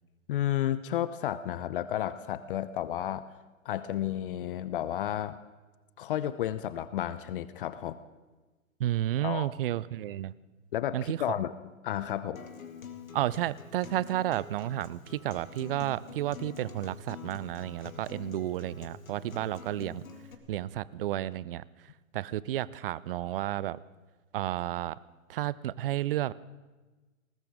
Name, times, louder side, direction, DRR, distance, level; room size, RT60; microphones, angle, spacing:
voice 1, 0.3-3.2 3.6-5.4 6.0-8.0 9.2-9.5 10.7-11.5 11.8-12.4, left 11 dB, 40° left, 15 dB, 0.6 m, -32 dB
voice 2, 8.8-10.3 10.9-11.2 13.1-20.0 20.5-21.6 22.1-23.8 24.3-25.0 25.3-26.3, right 13 dB, 45° right, 20 dB, 0.5 m, -32 dB
Acoustic guitar, 12.4-20.3, left 6 dB, 75° left, 2.2 m, -46 dB
20.5 x 19.0 x 3.6 m, 1.2 s
figure-of-eight pair, 120°, 41 cm